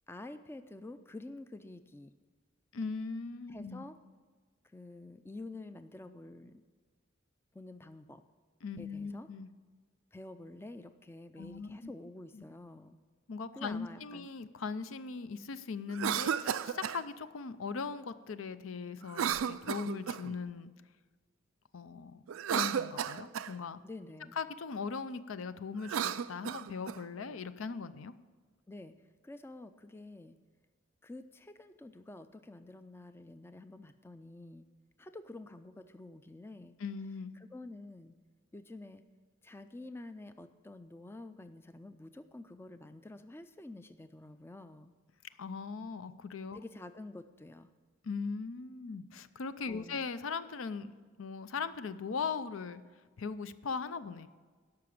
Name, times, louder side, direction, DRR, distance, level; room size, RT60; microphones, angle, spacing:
voice 1, 0.1-2.1 3.5-4.0 4.6-6.6 7.5-8.2 8.8-9.3 10.1-13.0 13.6-14.3 23.8-24.4 28.7-30.4 31.0-34.7 35.0-36.7 37.4-38.1 38.5-39.0 39.4-44.9 46.5-47.7 49.7-50.1, left 2 dB, 10° left, 10 dB, 0.3 m, -48 dB
voice 2, 2.7-3.8 8.6-9.5 11.4-11.9 12.3-12.4 13.3-20.7 21.7-22.2 22.5-23.8 24.4-28.1 36.8-37.4 45.4-46.6 48.0-52.8 53.2-54.3, left 5 dB, 80° left, 13 dB, 0.5 m, -39 dB
Cough, 15.9-17.0 19.1-20.4 22.3-23.5 25.8-27.0, right 8 dB, 80° right, 0.4 m, -33 dB
12.5 x 5.9 x 8.6 m, 1.5 s
head